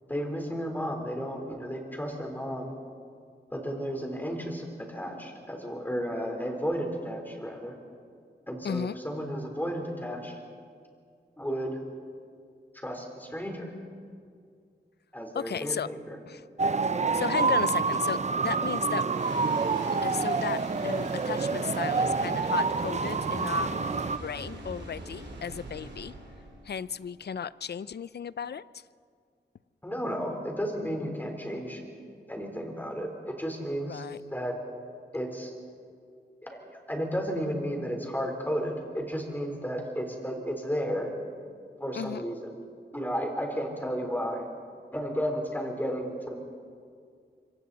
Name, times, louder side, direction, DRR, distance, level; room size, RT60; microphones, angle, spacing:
voice 1, 0.1-2.7 3.5-7.8 8.5-10.4 11.4-11.8 12.7-13.7 15.1-16.2 29.8-31.8 32.3-34.1 34.3-34.6 35.1-35.5 36.4-41.1 41.8-42.6 42.9-44.5 44.9-46.3, equal, 10° left, 2 dB, 4.0 m, -33 dB
voice 2, 8.6-9.0 15.3-15.9 16.3-16.4 17.1-19.1 19.7-23.7 24.2-26.1 26.6-28.8 33.9-34.2 41.9-42.2, left 7 dB, 65° left, 18 dB, 0.5 m, -35 dB
sound 1, 16.6-24.2, right 4 dB, 40° right, 0.6 m, -27 dB
sound 2, 19.1-27.6, right 2 dB, 75° right, 3.7 m, -42 dB
26.0 x 24.5 x 4.2 m, 2.2 s
wide cardioid pair, 85°, 18 cm